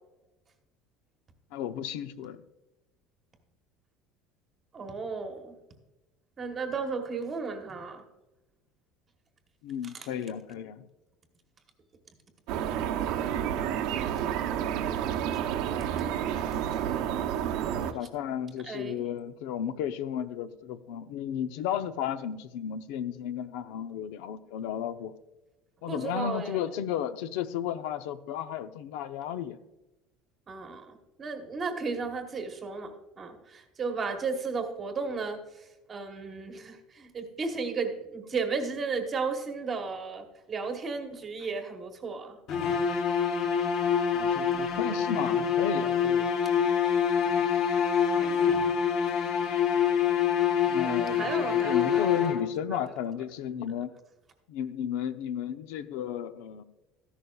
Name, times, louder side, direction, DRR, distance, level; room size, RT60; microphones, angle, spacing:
voice 1, 1.5-2.4 9.6-10.9 17.8-25.1 25.8-29.6 44.1-46.3 50.7-53.9 54.5-56.6, left 9 dB, 70° left, 11 dB, 0.7 m, -34 dB
voice 2, 4.7-5.5 6.4-8.0 9.8-10.1 18.6-19.0 25.9-26.6 30.5-42.4 50.8-52.4 52.7-52.8, right 4 dB, 20° right, 5 dB, 1.2 m, -34 dB
sound 1, 12.5-17.9, right 9 dB, 60° right, 0.8 m, -30 dB
sound 2, 42.5-52.7, left 7 dB, 40° left, 0.9 m, -26 dB
13.5 x 11.0 x 2.4 m, 1.0 s
cardioid pair, 175°, 0 cm